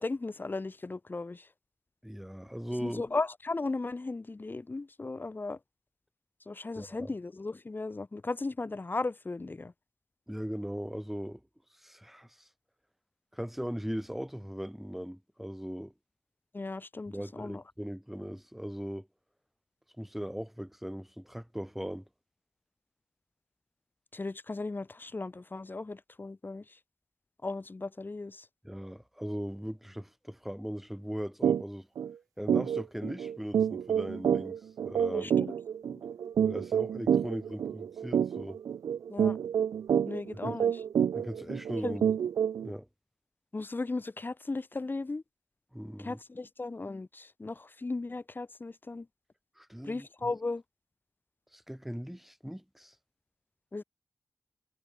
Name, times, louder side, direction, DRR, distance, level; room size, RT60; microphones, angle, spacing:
voice 1, 0.0-1.5 2.8-5.6 6.5-9.7 16.5-17.6 24.1-26.6 27.4-28.5 35.1-35.5 35.9-36.0 39.1-39.4 40.0-40.8 41.8-42.0 43.5-45.2 46.0-49.1 49.9-50.6 53.7-53.8, left 3 dB, 35° left, 2.6 m, -36 dB
voice 2, 2.0-3.0 6.8-7.1 10.3-11.4 11.8-12.5 13.3-15.9 17.1-19.1 20.0-22.0 28.6-31.9 32.4-35.3 36.5-38.6 40.4-40.6 41.1-42.0 42.6-42.9 45.7-46.2 49.6-50.3 51.5-53.0, equal, 5° right, 6.9 m, -39 dB
sound 1, 31.4-31.6 32.0-32.1 32.5-42.7, right 8 dB, 85° right, 0.5 m, -28 dB
cardioid pair, 55°, 6 cm